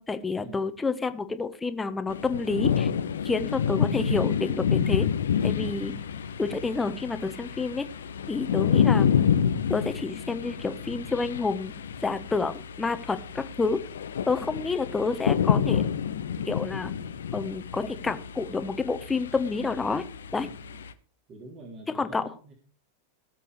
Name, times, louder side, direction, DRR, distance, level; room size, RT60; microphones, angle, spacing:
voice 1, 0.0-2.9 3.2-5.1 5.4-5.9 6.4-7.9 8.3-9.2 9.7-11.7 12.0-13.8 14.2-15.8 16.4-16.9 17.3-20.0 20.3-20.5 21.9-22.2, left 4 dB, 10° left, 10 dB, 1.4 m, -29 dB
sound 1, 2.1-20.9, left 8 dB, 65° left, 1.0 m, -28 dB
voice 2, 20.5-20.8 21.3-22.5, right 2 dB, 30° right, 1 dB, 3.2 m, -47 dB
17.5 x 7.7 x 4.9 m, 0.41 s
figure-of-eight pair, 90°, 0 cm